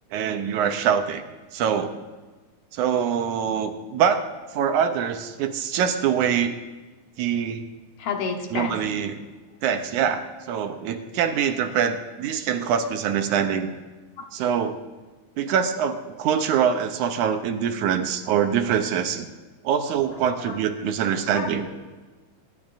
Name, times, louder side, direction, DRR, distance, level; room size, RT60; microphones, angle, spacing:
voice 1, 0.1-1.2 1.5-2.0 2.7-4.3 4.5-6.6 7.2-7.7 8.5-9.2 9.6-13.7 14.3-14.8 15.4-19.3 19.6-21.7, right 8 dB, 80° right, 7 dB, 2.1 m, -24 dB
voice 2, 8.0-8.8 14.2-14.3 20.4-20.6 21.3-21.7, left 5 dB, 70° left, 3 dB, 2.4 m, -30 dB
24.0 x 11.5 x 2.6 m, 1.3 s
omnidirectional pair, 3.6 m